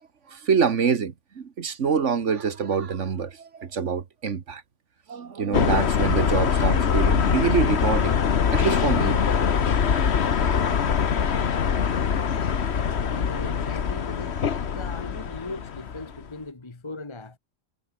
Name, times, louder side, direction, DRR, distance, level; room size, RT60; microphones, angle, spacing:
voice 1, 0.3-4.6 5.1-8.2 8.5-9.5 10.4-10.8, right 6 dB, 65° right, 1.6 m, -26 dB
sound 1, 5.5-16.3, left 7 dB, 55° left, 1.4 m, -23 dB
voice 2, 12.7-14.4 14.7-17.4, left 3 dB, 20° left, 1.3 m, -39 dB
omnidirectional pair, 1.4 m